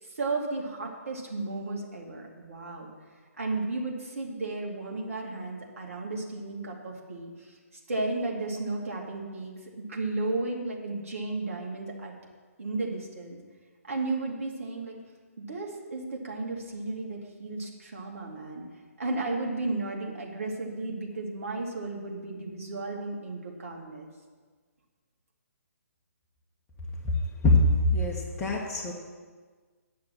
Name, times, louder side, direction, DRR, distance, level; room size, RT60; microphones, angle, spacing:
voice 1, 0.0-2.9 3.4-12.1 12.6-13.4 13.8-15.0 15.4-18.6 19.0-24.1, right 2 dB, 60° right, -1 dB, 2.7 m, -34 dB
voice 2, 27.4-28.9, left 2 dB, 15° left, -4 dB, 1.4 m, -23 dB
10.5 x 6.6 x 7.6 m, 1.5 s
figure-of-eight pair, 135°, 8 cm